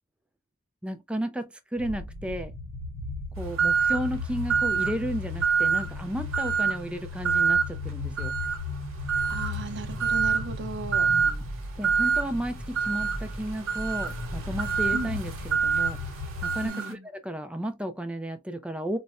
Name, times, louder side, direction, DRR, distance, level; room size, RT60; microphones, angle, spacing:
voice 1, 0.8-2.5 3.4-8.3 11.1-11.5 11.8-16.0 16.4-19.0, right 1 dB, 5° right, 0.3 m, -33 dB
sound 1, 1.8-16.7, left 3 dB, 40° left, 0.7 m, -36 dB
sound 2, 3.6-4.1 4.5-5.0 5.4-5.9 6.3-6.8 7.2-7.7 8.2-8.6 9.1-9.6 10.0-10.5 10.9-11.3 11.8-12.2 12.8-16.9, right 6 dB, 70° right, 1.1 m, -26 dB
voice 2, 9.3-11.1 14.9-15.2 16.6-17.1, right 3 dB, 55° right, 0.6 m, -36 dB
4.0 x 2.1 x 2.3 m
head